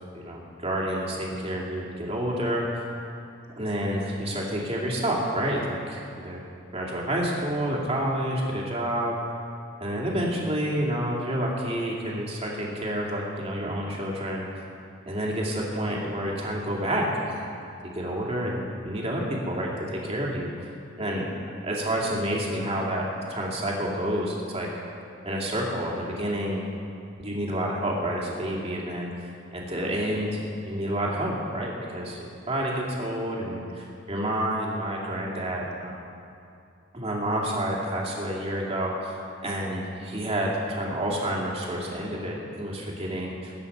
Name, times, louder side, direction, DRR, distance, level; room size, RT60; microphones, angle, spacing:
voice 1, 0.1-2.8 3.6-6.5 6.7-9.2 9.8-14.7 15.1-17.7 17.9-21.3 21.6-24.7 25.2-26.6 27.2-32.2 32.5-36.1 36.9-43.5, right 1 dB, 30° right, -3 dB, 2.5 m, -29 dB
20.5 x 9.3 x 5.4 m, 2.6 s
head